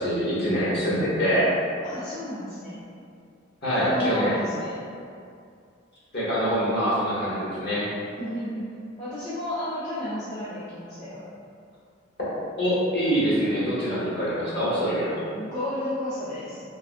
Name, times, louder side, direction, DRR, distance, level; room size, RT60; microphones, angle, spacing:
voice 1, 0.0-1.5 3.6-4.4 6.1-7.9 12.6-15.2, equal, 55° left, -9 dB, 1.1 m, -24 dB
voice 2, 1.8-2.8 3.7-4.8 8.2-8.6 9.0-11.3 15.3-16.6, left 1 dB, 40° left, -13 dB, 0.6 m, -32 dB
3.5 x 2.2 x 2.4 m, 2.4 s
head